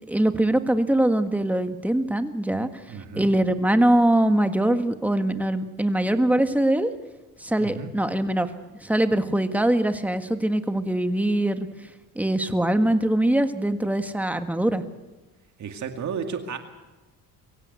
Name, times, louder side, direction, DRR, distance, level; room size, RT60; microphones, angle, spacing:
voice 1, 0.1-2.7 3.1-6.9 7.4-8.5 8.8-11.7 12.1-14.8, right 1 dB, 5° right, 8 dB, 1.6 m, -22 dB
voice 2, 2.9-3.3 7.6-7.9 15.6-16.6, right 6 dB, 55° right, 5 dB, 2.3 m, -32 dB
23.5 x 16.5 x 8.2 m, 1.2 s
cardioid pair, 95°, 34 cm